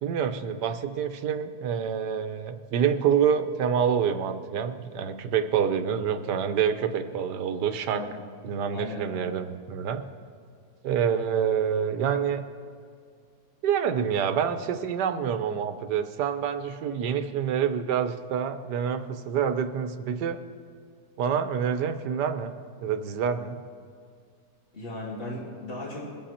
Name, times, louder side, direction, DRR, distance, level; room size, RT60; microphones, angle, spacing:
voice 1, 0.0-8.0 8.4-10.0 10.8-12.4 13.6-20.4 21.2-22.5 22.8-23.6, right 7 dB, 90° right, 9 dB, 1.4 m, -27 dB
voice 2, 8.7-9.3 24.7-26.1, left 1 dB, 35° left, -4 dB, 2.7 m, -36 dB
22.0 x 7.8 x 4.3 m, 2.2 s
omnidirectional pair, 1.7 m